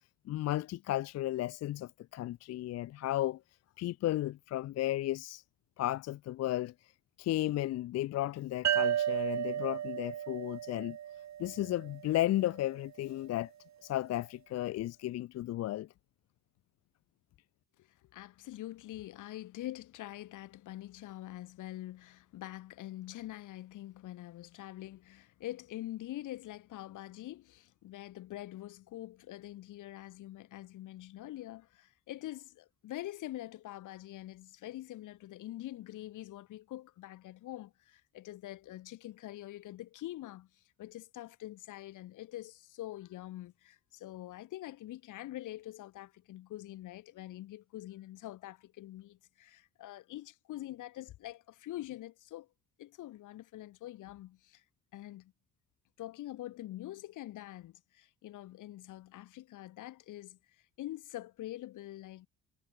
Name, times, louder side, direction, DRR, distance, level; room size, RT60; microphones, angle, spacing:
voice 1, 0.3-3.4 3.8-5.4 5.8-6.7 7.2-11.0 11.4-13.5 13.8-15.9, left 14 dB, 60° left, 0.4 m, -34 dB
sound 1, 8.6-12.1, right 11 dB, 65° right, 1.9 m, -33 dB
voice 2, 17.8-52.5 52.8-54.6 54.9-55.3 56.0-60.4 60.8-62.3, left 15 dB, 85° left, 4.3 m, -45 dB
cardioid pair, 90°, 30 cm